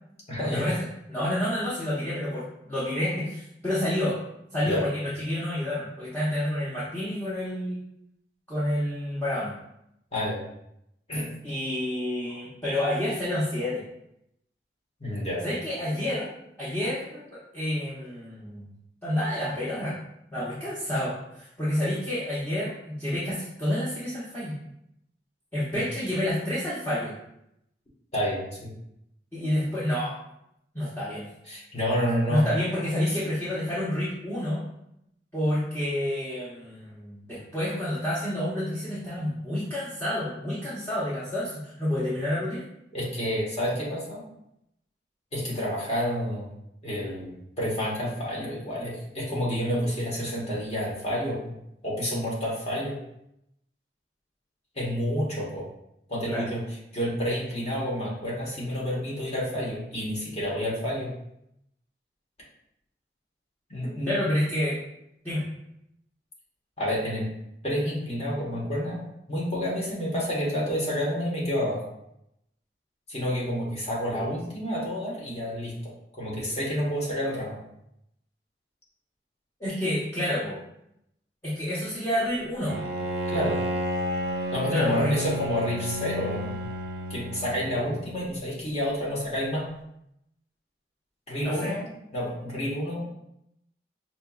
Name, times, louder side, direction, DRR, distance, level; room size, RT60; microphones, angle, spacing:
voice 1, 0.3-0.7 4.6-4.8 10.1-10.4 11.1-11.3 15.0-15.4 25.7-25.8 28.1-28.7 31.5-32.4 42.9-44.2 45.3-46.5 46.8-51.5 51.8-53.0 54.7-55.6 56.1-56.6 56.9-61.1 63.7-64.3 66.8-67.3 67.6-71.8 73.1-75.7 76.2-77.6 83.3-83.6 84.5-86.6 87.1-89.6 91.3-91.9 92.1-93.0, equal, 35° left, -5 dB, 1.3 m, -29 dB
voice 2, 1.1-4.2 4.5-7.8 8.5-9.5 11.4-13.8 15.4-16.3 16.6-18.7 19.0-20.0 20.3-24.5 25.5-27.1 29.3-30.1 30.7-31.3 32.3-34.6 35.3-42.6 56.3-56.5 64.1-64.8 65.2-65.4 79.6-80.6 81.4-82.8 84.7-85.1 91.4-91.7, left 1 dB, 15° left, -10 dB, 0.9 m, -29 dB
Bowed string instrument, 82.7-88.0, equal, 60° right, 0.5 m, -31 dB
5.4 x 2.9 x 2.4 m, 0.79 s
head